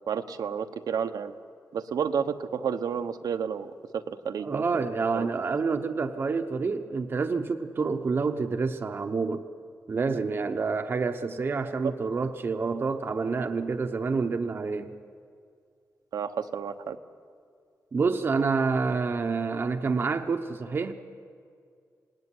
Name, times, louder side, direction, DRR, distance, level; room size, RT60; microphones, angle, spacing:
voice 1, 0.1-1.3 1.7-5.3 11.8-11.9 16.1-17.0, right 7 dB, 85° right, 9 dB, 1.1 m, -31 dB
voice 2, 4.4-9.5 9.9-15.0 17.9-20.9, right 4 dB, 35° right, 6 dB, 0.8 m, -28 dB
27.0 x 18.5 x 9.8 m, 2.3 s
wide cardioid pair, 180°, 6 cm